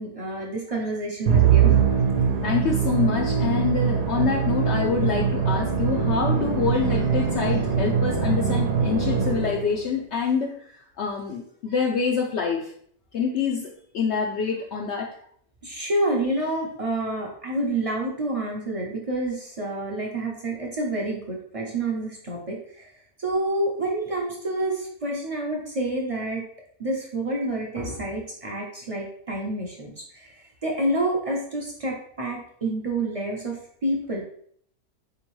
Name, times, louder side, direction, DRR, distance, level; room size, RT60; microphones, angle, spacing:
voice 1, 0.0-1.8 15.6-22.6 23.2-26.4 26.8-29.9 30.6-33.6 33.8-34.2, right 1 dB, 40° right, -1 dB, 0.5 m, -28 dB
Musical instrument, 1.3-9.8, right 7 dB, 80° right, 1.2 m, -22 dB
voice 2, 2.4-10.5 11.0-12.7 13.1-15.1, left 6 dB, 70° left, -2 dB, 0.6 m, -26 dB
4.3 x 3.7 x 3.1 m, 0.63 s
omnidirectional pair, 1.7 m